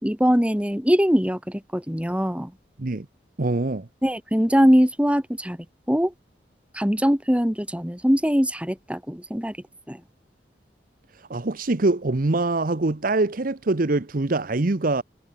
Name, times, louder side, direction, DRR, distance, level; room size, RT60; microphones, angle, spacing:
voice 1, 0.0-2.5 4.0-5.6 5.9-6.1 6.7-9.6 9.9-10.0, equal, 5° right, 3.5 m, -22 dB
voice 2, 3.4-3.9 11.2-15.0, right 2 dB, 50° right, 0.9 m, -24 dB
head